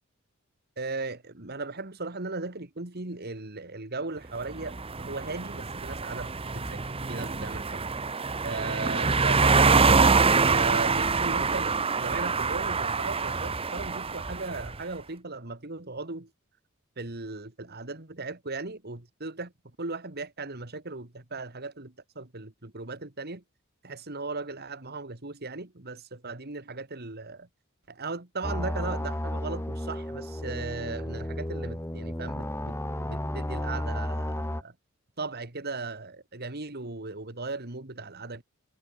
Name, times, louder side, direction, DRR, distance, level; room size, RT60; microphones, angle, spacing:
voice 1, 0.8-7.8 8.4-10.0 10.5-16.3 17.0-19.5 19.8-23.4 23.8-27.5 27.9-34.8 35.2-38.4, right 3 dB, 50° right, 2.4 m, -37 dB
sound 1, 4.4-14.7, right 4 dB, 25° right, 1.0 m, -25 dB
sound 2, 28.4-34.6, left 1 dB, 10° left, 1.8 m, -33 dB
head